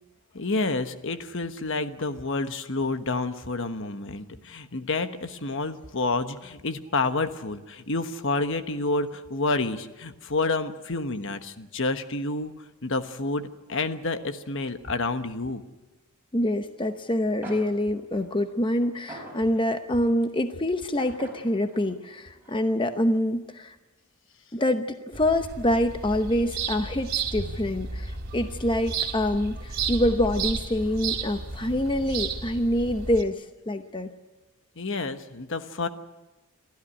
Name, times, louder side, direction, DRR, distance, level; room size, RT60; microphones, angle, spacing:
voice 1, 0.3-12.5 12.8-15.6 34.8-35.9, left 3 dB, 60° left, 9 dB, 1.2 m, -29 dB
voice 2, 16.3-23.8 24.5-34.1, left 1 dB, 20° left, 8 dB, 0.8 m, -26 dB
sound 1, 17.1-17.2 17.4-20.0 21.0-22.9, right 1 dB, 10° right, 4.9 m, -46 dB
sound 2, 25.1-33.2, right 5 dB, 45° right, 2.7 m, -33 dB
28.5 x 13.5 x 10.0 m, 1.1 s
head